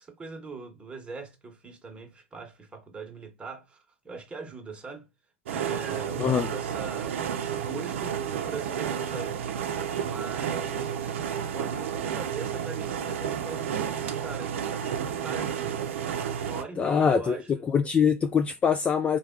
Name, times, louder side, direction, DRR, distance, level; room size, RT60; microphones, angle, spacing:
voice 1, 0.0-5.1 5.5-9.4 10.0-11.2 11.5-15.8 16.4-17.6, right 4 dB, 15° right, 1.1 m, -41 dB
sound 1, 5.5-16.6, right 8 dB, 65° right, 0.6 m, -31 dB
voice 2, 16.8-17.4 17.7-19.2, left 6 dB, 20° left, 0.3 m, -23 dB
3.2 x 2.4 x 3.6 m
hypercardioid pair, 105°, 7 cm